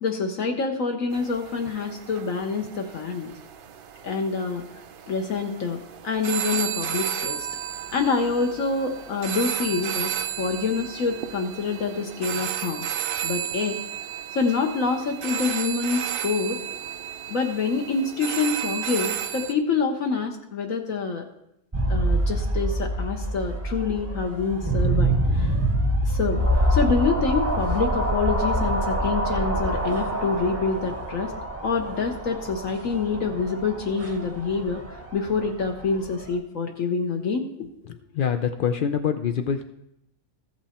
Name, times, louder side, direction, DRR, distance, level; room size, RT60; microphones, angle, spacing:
voice 1, 0.0-3.3 4.0-4.6 5.1-7.5 7.9-12.9 13.2-13.8 14.3-16.6 17.3-21.2 21.9-25.5 26.1-26.4 26.7-31.3 31.6-34.8 35.1-37.7, left 4 dB, 65° left, 3 dB, 1.2 m, -26 dB
sound 1, 1.1-19.5, right 10 dB, 85° right, 0.4 m, -33 dB
sound 2, 21.7-36.4, right 1 dB, 15° right, 0.7 m, -26 dB
voice 2, 37.8-39.6, left 7 dB, 90° left, 7 dB, 0.4 m, -25 dB
14.5 x 6.0 x 4.3 m, 0.81 s
omnidirectional pair, 1.6 m